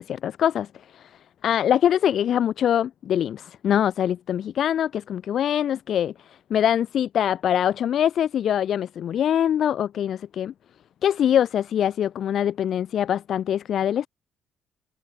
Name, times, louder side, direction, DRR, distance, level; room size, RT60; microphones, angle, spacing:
voice 1, 0.0-10.5 11.0-14.1, left 10 dB, 65° left, 5.8 m, -23 dB
supercardioid pair, 75°, 0 cm